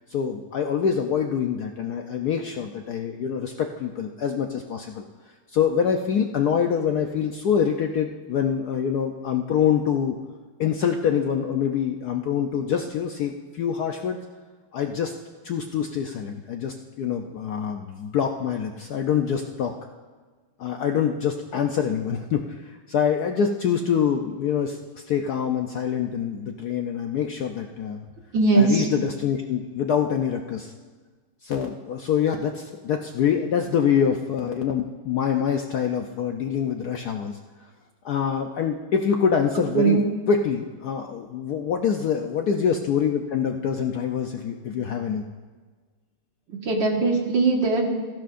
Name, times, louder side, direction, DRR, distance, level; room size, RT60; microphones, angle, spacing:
voice 1, 0.1-5.0 5.5-10.2 10.6-14.2 14.7-15.1 15.4-19.7 20.6-28.1 28.6-30.7 31.4-37.4 38.0-40.0 40.3-45.2, left 7 dB, 70° left, 4 dB, 1.0 m, -25 dB
voice 2, 28.3-28.9 39.7-40.0 46.5-47.9, right 3 dB, 65° right, 0 dB, 2.3 m, -20 dB
19.0 x 15.0 x 2.5 m, 1.4 s
omnidirectional pair, 2.2 m